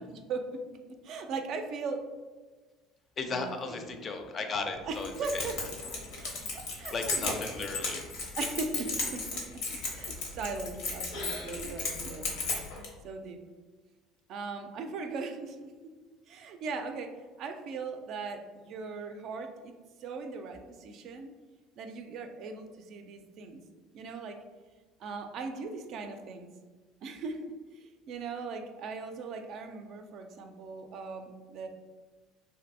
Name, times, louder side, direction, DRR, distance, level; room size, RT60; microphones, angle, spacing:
voice 1, 0.1-0.8 1.0-2.0 3.3-3.9 4.9-5.5 6.2-7.4 8.3-9.6 9.9-12.4 13.0-13.4 14.3-15.7 16.3-17.1 17.4-19.7 20.0-21.3 21.8-23.6 23.9-24.4 25.0-26.5 27.0-27.5 27.7-31.7, right 4 dB, 60° right, 5 dB, 0.3 m, -39 dB
voice 2, 3.2-5.5 6.9-8.1, left 4 dB, 40° left, 6 dB, 0.4 m, -35 dB
Keys jangling, 4.9-12.9, left 3 dB, 80° left, 0.7 m, -35 dB
2.6 x 2.5 x 2.6 m, 1.3 s
hypercardioid pair, 70°, 0 cm